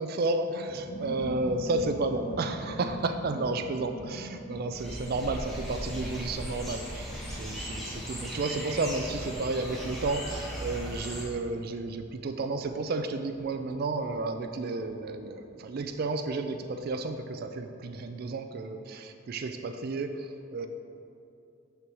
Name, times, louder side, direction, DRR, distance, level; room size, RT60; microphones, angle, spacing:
voice 1, 0.0-20.7, right 3 dB, 50° right, 7 dB, 0.4 m, -32 dB
sound 1, 0.7-17.0 17.2-17.3 17.5-18.0, left 1 dB, 35° left, 0.6 m, -45 dB
sound 2, 4.7-11.2, equal, ahead, 1.1 m, -38 dB
6.5 x 4.5 x 6.1 m, 2.6 s
head